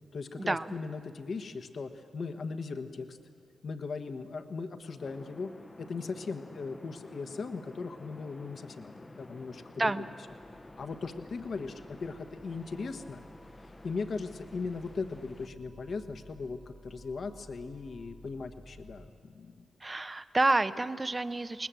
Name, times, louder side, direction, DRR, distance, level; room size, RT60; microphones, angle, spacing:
voice 1, 0.1-3.2 3.6-5.5 5.8-9.9 10.8-13.2 13.8-19.7, left 4 dB, 65° left, 8 dB, 1.2 m, -38 dB
sound 1, 5.0-15.5, left 2 dB, 25° left, 0.8 m, -51 dB
sound 2, 10.3-19.1, equal, 10° right, 1.5 m, -55 dB
voice 2, 19.8-21.7, right 2 dB, 30° right, 13 dB, 0.8 m, -29 dB
21.0 x 19.5 x 7.6 m, 2.2 s
supercardioid pair, 45°, 0 cm